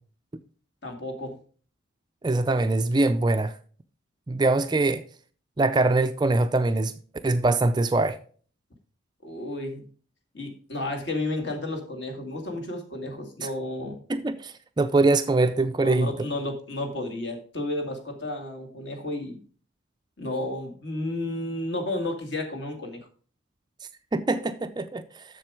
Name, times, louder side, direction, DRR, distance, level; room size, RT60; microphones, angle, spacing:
voice 1, 0.8-1.4 9.2-9.8 10.3-14.0 15.8-19.4 20.2-23.0, left 1 dB, 55° left, 2.0 m, -32 dB
voice 2, 2.2-3.6 4.3-5.0 5.6-6.9 7.2-8.2 13.4-13.5 14.1-16.1 24.1-25.2, right 2 dB, 20° right, 0.4 m, -23 dB
7.4 x 6.8 x 4.8 m
head